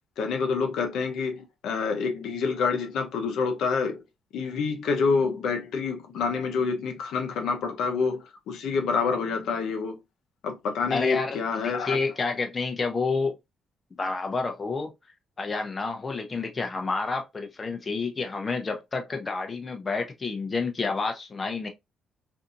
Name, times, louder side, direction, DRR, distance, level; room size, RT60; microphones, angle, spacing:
voice 1, 0.2-4.0 4.3-10.0 10.4-12.0, left 5 dB, 80° left, 0.6 m, -27 dB
voice 2, 10.9-13.4 14.0-14.9 15.4-21.7, left 4 dB, 30° left, 0.6 m, -29 dB
2.7 x 2.5 x 2.4 m
cardioid pair, 90°, 0 cm